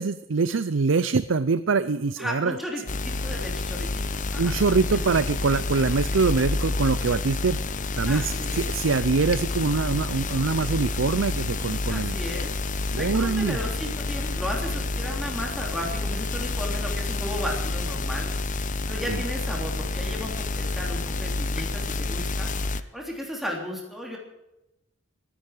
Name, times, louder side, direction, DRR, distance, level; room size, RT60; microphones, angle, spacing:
voice 1, 0.0-2.6 4.4-7.6 8.0-12.2 12.9-13.6 19.1-19.2, right 4 dB, 75° right, 14 dB, 0.6 m, -24 dB
voice 2, 2.2-4.8 8.0-8.6 11.9-12.5 13.0-18.3 18.6-24.2, equal, ahead, -1 dB, 3.3 m, -35 dB
sound 1, 2.9-22.8, left 3 dB, 40° left, 0.8 m, -29 dB
24.5 x 10.0 x 5.0 m, 0.91 s
head